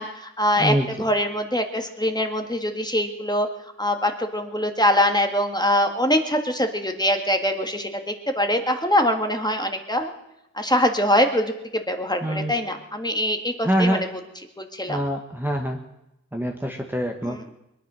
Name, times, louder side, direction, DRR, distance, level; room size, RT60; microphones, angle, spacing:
voice 1, 0.0-3.5 3.8-10.1 10.5-14.2 14.6-15.0 17.2-17.4, left 1 dB, 15° left, 5 dB, 1.7 m, -23 dB
voice 2, 12.2-12.5 13.6-14.1 14.9-15.8 16.3-17.4, equal, 5° right, 1 dB, 1.3 m, -24 dB
22.5 x 10.0 x 6.2 m, 0.88 s
wide cardioid pair, 95°, 30 cm